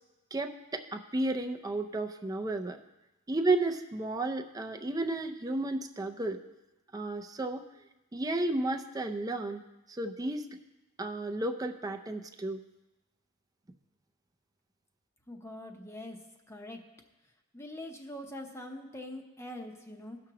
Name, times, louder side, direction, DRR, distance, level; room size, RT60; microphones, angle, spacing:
voice 1, 0.3-2.8 3.3-6.4 6.9-7.7 8.1-9.6 9.9-10.6 11.0-12.6, right 2 dB, 20° right, 5 dB, 0.5 m, -32 dB
voice 2, 15.3-16.2 16.5-16.8 17.5-20.2, left 1 dB, 15° left, 2 dB, 0.8 m, -43 dB
17.5 x 6.1 x 2.9 m, 1.0 s
head